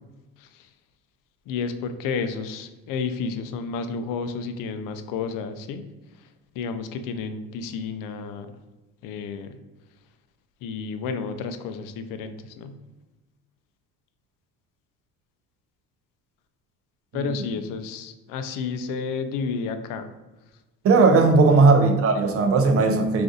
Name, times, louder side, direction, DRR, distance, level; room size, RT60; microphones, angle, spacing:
voice 1, 0.4-0.7 1.5-5.9 6.6-8.5 9.0-9.6 10.6-12.8 17.1-20.1 21.4-21.8, left 5 dB, 60° left, 0.5 m, -31 dB
voice 2, 20.8-23.2, right 3 dB, 40° right, 0.5 m, -17 dB
2.5 x 2.4 x 3.8 m
supercardioid pair, 90°, 37 cm